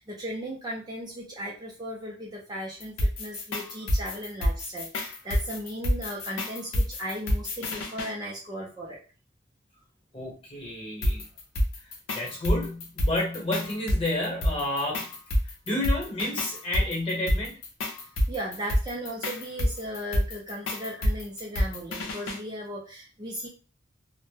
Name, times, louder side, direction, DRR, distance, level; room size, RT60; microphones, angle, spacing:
voice 1, 0.0-9.0 18.3-23.5, equal, 20° right, -3 dB, 0.4 m, -36 dB
sound 1, 2.8-8.1 11.0-22.4, equal, 85° left, 0.6 m, -28 dB
voice 2, 10.1-11.2 11.8-15.1 15.4-17.6, left 1 dB, 30° left, -3 dB, 0.9 m, -30 dB
2.1 x 2.1 x 3.1 m, 0.35 s
head